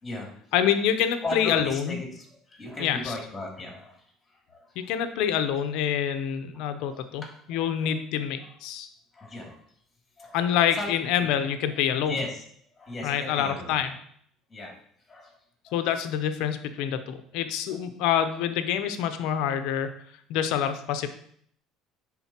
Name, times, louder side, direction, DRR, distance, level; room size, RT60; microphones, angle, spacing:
voice 1, 0.5-2.0 2.8-3.1 4.8-7.2 7.5-8.9 10.3-12.1 13.0-14.0 15.7-19.9 20.3-21.1, left 9 dB, 75° left, 9 dB, 0.7 m, -26 dB
voice 2, 1.2-4.0 4.5-4.6 6.9-7.0 7.5-7.9 9.1-9.6 10.2-10.4 10.7-10.9 11.2-11.3 11.9-12.4 12.8-13.7 14.5-14.7 15.1-15.3 15.7-15.8, left 2 dB, 20° left, -1 dB, 2.5 m, -36 dB
10.5 x 3.9 x 2.9 m, 0.64 s
cardioid pair, 115°, 0 cm